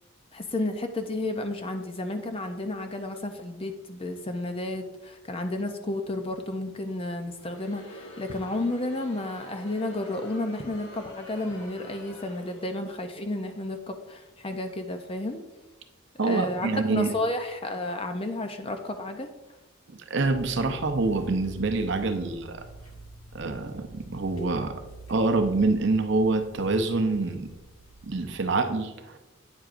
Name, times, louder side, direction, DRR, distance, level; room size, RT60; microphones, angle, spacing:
voice 1, 0.3-15.4 16.2-19.3, left 2 dB, 25° left, 6 dB, 0.5 m, -32 dB
Crowd, 7.3-13.0, left 1 dB, 65° left, 1.7 m, -46 dB
voice 2, 16.2-17.1 19.9-22.6 23.3-24.7 25.1-27.5 28.0-29.2, right 3 dB, 55° right, 7 dB, 0.6 m, -26 dB
sound 1, 20.2-28.5, right 2 dB, 80° left, 1.0 m, -47 dB
9.1 x 7.7 x 2.5 m, 1.1 s
head